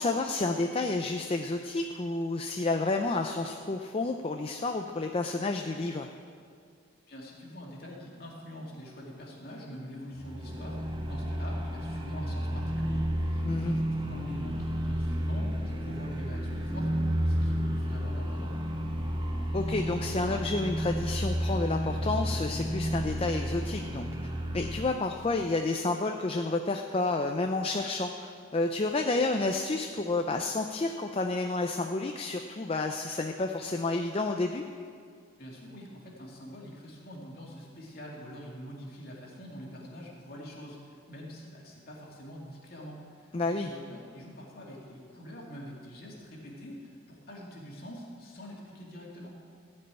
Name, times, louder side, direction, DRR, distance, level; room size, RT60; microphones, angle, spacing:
voice 1, 0.0-6.1 13.4-13.8 19.5-24.1 24.5-34.6 43.3-43.7, left 3 dB, 30° left, 4 dB, 0.4 m, -30 dB
voice 2, 7.1-18.5 35.4-49.4, equal, 50° left, -3 dB, 2.4 m, -45 dB
sound 1, 10.2-24.9, equal, 25° right, 1.0 m, -31 dB
15.0 x 5.4 x 9.0 m, 2.2 s
head